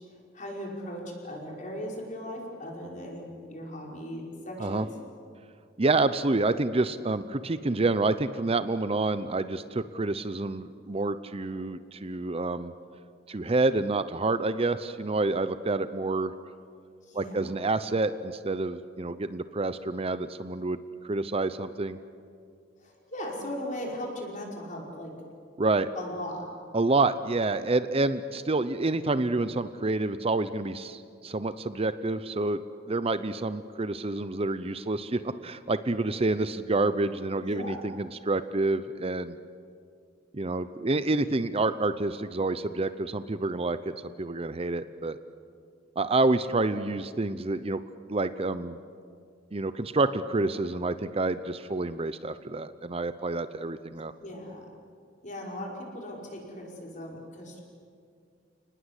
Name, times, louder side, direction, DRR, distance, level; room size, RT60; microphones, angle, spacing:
voice 1, 0.1-4.9 17.1-17.5 22.8-25.1 25.9-26.5 37.4-37.9 54.2-54.7 55.2-57.6, left 1 dB, 40° left, -1 dB, 5.4 m, -38 dB
voice 2, 5.8-12.7 13.3-16.3 17.1-22.0 25.6-25.9 26.7-32.6 32.9-39.4 40.3-43.8 44.0-45.2 46.0-47.8 48.1-48.8 49.5-54.1, right 2 dB, 30° right, 12 dB, 0.7 m, -28 dB
30.0 x 19.5 x 8.3 m, 2.3 s
head